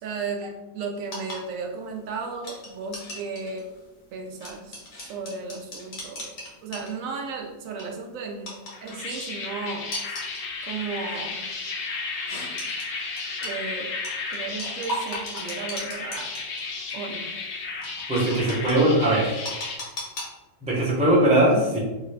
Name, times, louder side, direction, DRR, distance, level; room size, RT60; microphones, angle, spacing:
voice 1, 0.0-3.7 4.1-6.3 6.6-8.5 8.8-10.1 10.6-11.4 13.4-13.9 14.3-16.3 16.9-17.3, right 4 dB, 80° right, 2 dB, 1.0 m, -34 dB
sound 1, 1.0-7.3 7.6-7.9 8.5-9.2 9.9-10.4 11.0-11.2 12.3-13.5 14.0-16.6 16.9-17.0 17.8-18.7 19.4-20.2, left 1 dB, 90° left, 1.4 m, -37 dB
sound 2, 8.7-19.8, left 4 dB, 65° left, 0.8 m, -34 dB
voice 2, 18.1-19.4 20.6-21.8, right 1 dB, 5° right, -6 dB, 0.6 m, -20 dB
3.2 x 2.4 x 3.2 m, 1.1 s
omnidirectional pair, 1.4 m